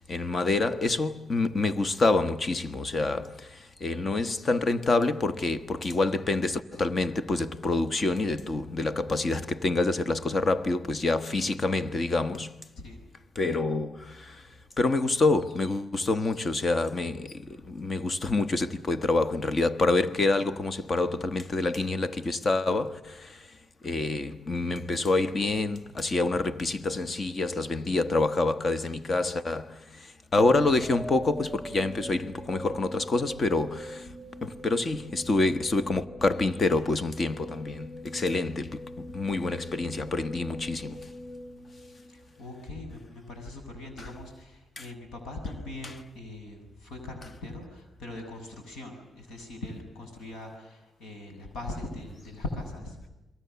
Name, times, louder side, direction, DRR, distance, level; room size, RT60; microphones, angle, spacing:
voice 1, 0.1-12.7 13.3-14.5 14.8-23.6 23.8-34.1 34.4-41.1 44.0-44.1 44.8-44.9, left 2 dB, 35° left, 1.2 m, -27 dB
sound 1, 30.3-42.4, equal, 10° left, 7.2 m, -43 dB
voice 2, 42.1-53.1, left 2 dB, 85° left, 7.5 m, -40 dB
29.5 x 22.5 x 7.0 m
cardioid pair, 105°, 0 cm